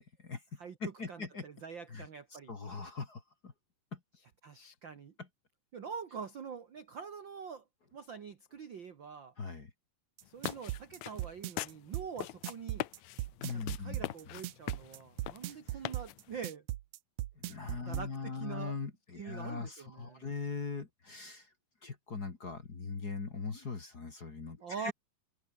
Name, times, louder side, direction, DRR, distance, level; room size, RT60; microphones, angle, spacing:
voice 1, 0.0-1.5 1.9-3.5 3.9-4.0 5.2-5.3 9.4-9.7 13.4-14.1 15.5-15.8 17.4-21.5 21.8-24.9, left 4 dB, 30° left, 2.2 m, -41 dB
voice 2, 1.1-2.5 4.4-5.1 5.7-7.6 7.9-9.3 10.2-12.9 13.5-16.6 17.7-18.8 19.2-20.2 24.6-24.9, right 6 dB, 50° right, 1.4 m, -45 dB
sound 1, 10.2-16.4, left 16 dB, 80° left, 1.6 m, -42 dB
sound 2, 10.2-18.1, right 16 dB, 75° right, 1.7 m, -38 dB
omnidirectional pair, 4.1 m